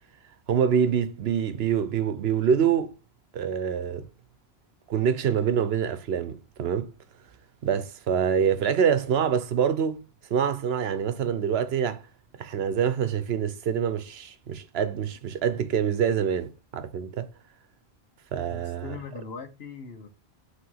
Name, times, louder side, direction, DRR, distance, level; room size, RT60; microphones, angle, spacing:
voice 1, 0.5-2.9 3.3-4.1 4.9-6.9 7.6-10.0 10.3-12.0 12.4-17.3 18.3-18.9, right 7 dB, 80° right, 0.9 m, -25 dB
voice 2, 18.5-20.1, left 5 dB, 75° left, 1.3 m, -40 dB
5.7 x 3.3 x 5.5 m
omnidirectional pair, 1.1 m